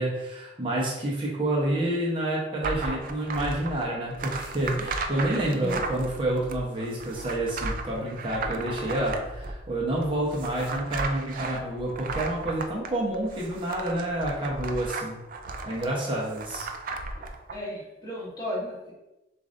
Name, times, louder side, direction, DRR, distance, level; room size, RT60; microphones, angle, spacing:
voice 1, 0.0-15.2 15.6-16.7, right 1 dB, 30° right, -4 dB, 0.9 m, -29 dB
sound 1, 2.6-17.5, right 3 dB, 50° right, 0.4 m, -35 dB
voice 2, 17.5-18.9, equal, 20° left, -5 dB, 1.2 m, -35 dB
6.8 x 2.6 x 2.6 m, 0.98 s
head